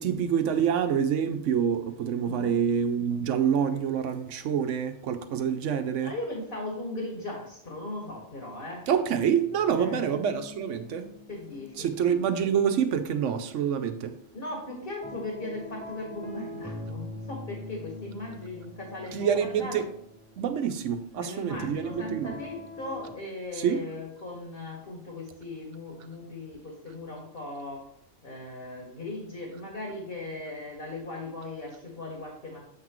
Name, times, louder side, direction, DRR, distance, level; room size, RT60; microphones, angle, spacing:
voice 1, 0.0-6.1 8.9-11.1 11.8-14.1 19.1-19.8 20.4-22.3 23.6-23.8, right 8 dB, 90° right, 1.0 m, -27 dB
voice 2, 2.2-2.5 6.0-8.9 9.7-10.2 11.3-11.9 14.3-19.8 21.1-27.8 28.2-32.6, left 2 dB, 50° left, 2.1 m, -38 dB
sound 1, 9.3-13.3 13.7-23.1, left 1 dB, 25° right, 1.4 m, -44 dB
7.8 x 6.0 x 3.1 m
omnidirectional pair, 1.2 m